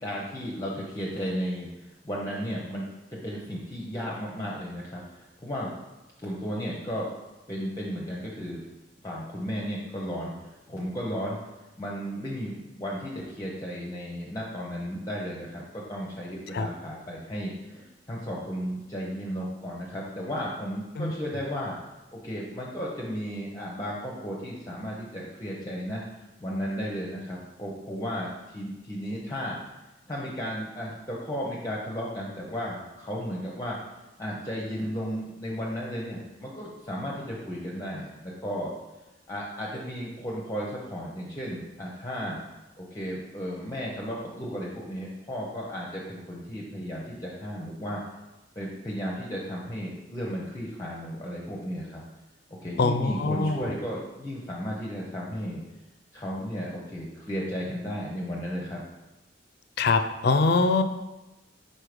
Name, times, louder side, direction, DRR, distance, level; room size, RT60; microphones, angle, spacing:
voice 1, 0.0-2.8 3.1-5.7 6.2-7.1 7.5-8.6 9.0-10.3 10.7-11.4 11.8-21.7 22.1-26.0 26.4-29.6 30.1-33.8 34.2-38.7 39.3-42.4 42.8-48.0 48.6-52.0 52.6-55.6 56.1-58.8, equal, 20° left, -3 dB, 0.7 m, -34 dB
voice 2, 52.8-53.7 59.8-60.8, left 3 dB, 60° left, 9 dB, 0.4 m, -23 dB
4.6 x 4.3 x 5.0 m, 1.0 s
head